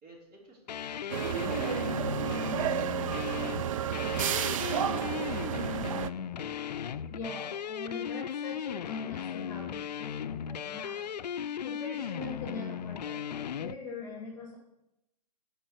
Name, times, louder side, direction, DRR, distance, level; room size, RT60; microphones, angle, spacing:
voice 1, 0.0-2.9, right 2 dB, 35° right, -3 dB, 3.3 m, -56 dB
sound 1, 0.7-13.7, left 8 dB, 85° left, 0.4 m, -36 dB
sound 2, 1.1-6.1, right 10 dB, 55° right, 0.4 m, -31 dB
voice 2, 7.1-11.1 11.4-14.6, left 3 dB, 15° left, -1 dB, 1.8 m, -42 dB
9.0 x 4.8 x 6.3 m, 0.87 s
hypercardioid pair, 145°, 21 cm